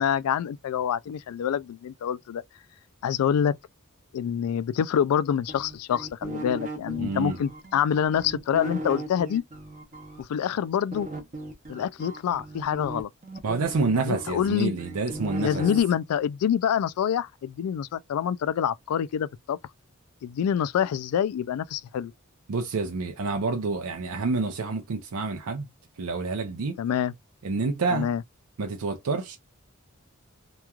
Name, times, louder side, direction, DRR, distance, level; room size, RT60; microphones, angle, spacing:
voice 1, 0.0-2.4 3.0-3.6 4.1-9.4 10.2-11.1 11.7-13.1 14.0-14.7 15.4-19.6 20.2-22.1 26.8-27.1 27.9-28.2, left 8 dB, 90° left, 0.3 m, -26 dB
sound 1, 5.5-10.2 10.9-15.8, right 1 dB, 35° right, 0.7 m, -37 dB
voice 2, 7.0-7.4 13.4-15.6 22.5-25.7 26.0-26.8 27.4-28.1 28.6-29.4, right 4 dB, 90° right, 0.5 m, -28 dB
3.0 x 2.3 x 2.3 m
head